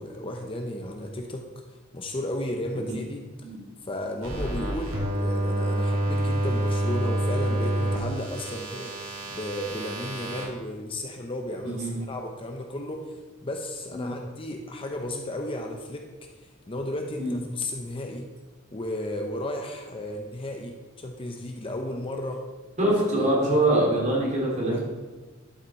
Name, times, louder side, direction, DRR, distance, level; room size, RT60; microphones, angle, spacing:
voice 1, 0.0-1.5 1.9-3.3 3.8-9.0 9.3-16.1 16.7-18.3 18.7-22.4 23.2-23.3 24.7-24.8, left 1 dB, 25° left, 3 dB, 0.7 m, -34 dB
sound 1, 4.2-10.4, right 1 dB, 85° right, 3.2 m, -28 dB
voice 2, 11.6-12.0 13.9-14.1 17.2-17.4 22.8-24.8, right 1 dB, 35° right, -3 dB, 2.8 m, -24 dB
11.5 x 5.8 x 4.2 m, 1.3 s
head